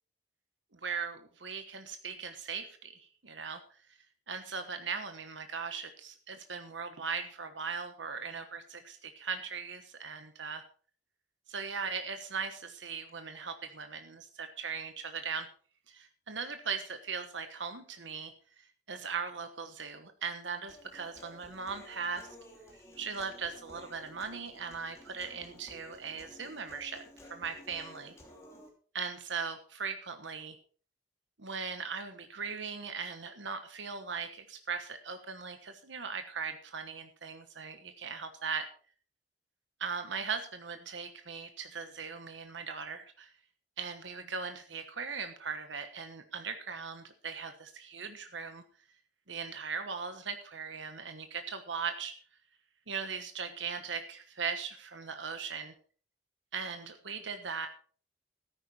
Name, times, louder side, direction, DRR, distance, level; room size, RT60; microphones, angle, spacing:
voice 1, 0.7-3.6 4.3-10.6 11.5-15.5 15.9-18.3 18.9-22.3 23.0-27.0 27.3-28.1 28.9-30.6 31.4-38.6 39.8-43.3 43.8-48.6 49.3-52.1 52.9-55.7 56.5-57.7, right 5 dB, 90° right, 8 dB, 1.2 m, -39 dB
Human voice, 20.7-28.7, left 1 dB, 15° left, 2.9 m, -54 dB
13.5 x 10.0 x 4.4 m, 0.43 s
head